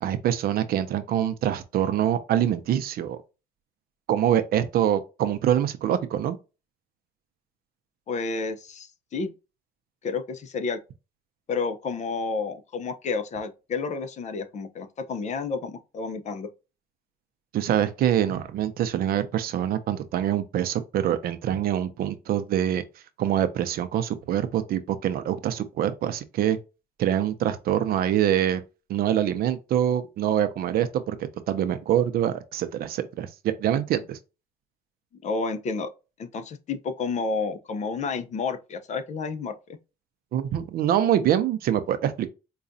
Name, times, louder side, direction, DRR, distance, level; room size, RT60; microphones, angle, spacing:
voice 1, 0.0-3.2 4.1-6.4 17.5-22.8 23.2-26.6 27.0-28.6 28.9-34.2 40.3-42.3, right 10 dB, 60° right, 0.5 m, -25 dB
voice 2, 8.1-9.3 10.0-10.8 11.5-16.5 35.2-35.9 36.2-39.5, left 4 dB, 45° left, 0.6 m, -30 dB
4.9 x 2.3 x 2.6 m
cardioid pair, 110°, 17 cm